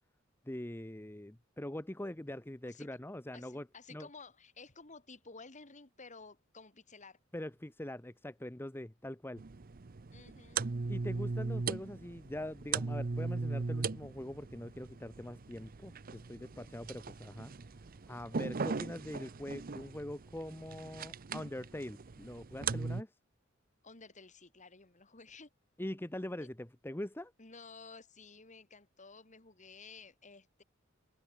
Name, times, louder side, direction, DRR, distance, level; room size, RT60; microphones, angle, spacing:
voice 1, 0.4-4.1 7.3-9.4 10.9-17.5 18.1-23.1 25.8-27.3, left 1 dB, 10° left, 1.0 m, -43 dB
voice 2, 3.3-7.2 10.1-10.6 23.8-25.5 26.4-26.5 27.4-30.6, left 4 dB, 40° left, 2.7 m, -53 dB
sound 1, 9.4-23.0, right 4 dB, 45° right, 0.7 m, -39 dB
head